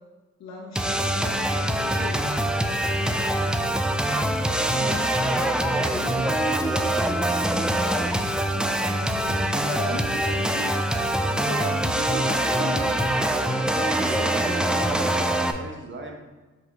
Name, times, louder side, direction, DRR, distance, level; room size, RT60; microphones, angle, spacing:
voice 1, 0.4-2.3 2.8-3.7 4.5-7.1 7.6-7.8 8.5-14.9, left 2 dB, 60° left, -1 dB, 1.0 m, -37 dB
sound 1, 0.7-15.5, right 1 dB, 5° right, 0.3 m, -24 dB
voice 2, 3.4-4.0 8.4-8.8 13.3-16.2, right 2 dB, 40° right, 2 dB, 1.2 m, -39 dB
8.0 x 4.0 x 3.4 m, 1.2 s
cardioid pair, 90°, 30 cm